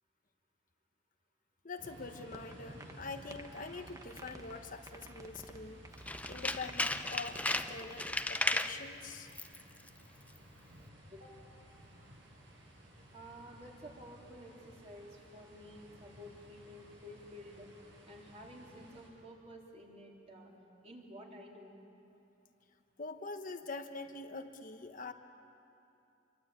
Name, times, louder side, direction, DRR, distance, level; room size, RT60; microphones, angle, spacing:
voice 1, 1.6-5.8 6.3-9.3 23.0-25.1, left 3 dB, 45° left, 6 dB, 1.1 m, -44 dB
sound 1, 1.8-19.1, equal, 70° right, 7.5 m, -56 dB
sound 2, 2.3-2.5 2.8-2.9 3.3-4.6 4.9-5.6 5.8-8.3, right 2 dB, 20° right, 1.2 m, -51 dB
Tools, 6.0-8.8 9.3-9.6 9.9-10.0, left 2 dB, 10° left, 0.7 m, -34 dB
voice 2, 13.1-17.7 18.1-20.5 20.8-21.7, equal, 35° right, -1 dB, 4.0 m, -52 dB
27.0 x 23.5 x 8.9 m, 2.8 s
head